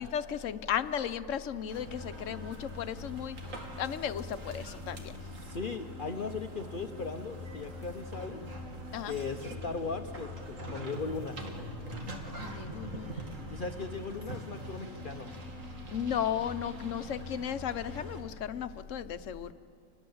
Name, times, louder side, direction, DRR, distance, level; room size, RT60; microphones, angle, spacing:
voice 1, 0.0-5.1 8.9-9.1 12.3-13.3 15.9-19.5, left 9 dB, 70° left, 13 dB, 1.1 m, -35 dB
sound 1, 1.7-18.2, equal, 75° right, 2.6 m, -43 dB
voice 2, 5.3-8.4 9.0-11.4 13.5-15.3, left 4 dB, 45° left, 7 dB, 0.8 m, -38 dB
27.5 x 21.0 x 7.8 m, 2.6 s
omnidirectional pair, 1.4 m